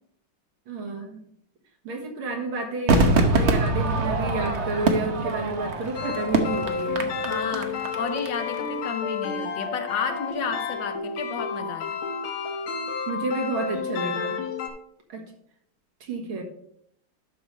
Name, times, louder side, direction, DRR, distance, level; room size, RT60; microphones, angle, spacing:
voice 1, 0.7-1.2 1.8-7.1 13.1-14.4 15.1-15.2 16.0-16.4, right 3 dB, 90° right, 2.4 m, -30 dB
Crowd / Fireworks, 2.9-8.3 8.5-8.6, right 2 dB, 50° right, 0.9 m, -24 dB
sound 1, 6.0-14.7, left 5 dB, 85° left, 1.9 m, -31 dB
voice 2, 7.2-12.0, left 5 dB, 65° left, 1.5 m, -32 dB
11.0 x 6.7 x 3.2 m
omnidirectional pair, 2.2 m